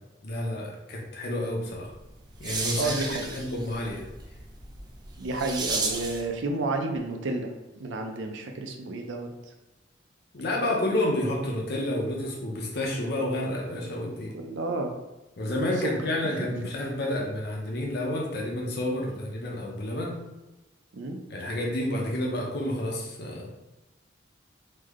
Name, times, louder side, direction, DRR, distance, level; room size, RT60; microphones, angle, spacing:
voice 1, 0.2-1.9 2.4-3.0 3.3-4.0 10.3-14.3 15.4-20.2 21.3-23.5, left 1 dB, 60° left, -1 dB, 0.7 m, -30 dB
sound 1, 1.9-6.3, right 3 dB, 25° right, 0.4 m, -34 dB
voice 2, 2.8-3.3 5.2-7.5 7.8-9.3 14.3-14.9 15.4-15.9 16.4-16.5 20.9-21.2, right 2 dB, 80° right, 4 dB, 0.5 m, -31 dB
3.2 x 2.1 x 3.6 m, 1.0 s
head